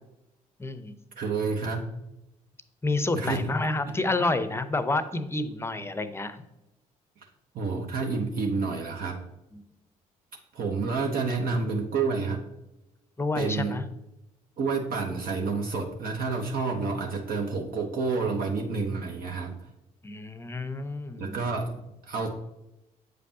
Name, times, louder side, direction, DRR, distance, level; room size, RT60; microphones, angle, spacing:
voice 1, 0.6-0.9 2.8-6.4 9.5-9.6 13.2-13.8 20.0-21.4, left 2 dB, 15° left, 11 dB, 0.7 m, -29 dB
voice 2, 1.2-1.9 3.1-3.5 3.9-4.0 7.5-9.2 10.5-12.5 13.3-13.8 14.6-19.5 21.2-22.3, right 4 dB, 55° right, 2 dB, 0.8 m, -29 dB
7.6 x 5.2 x 2.8 m, 0.90 s
hypercardioid pair, 50°, 18 cm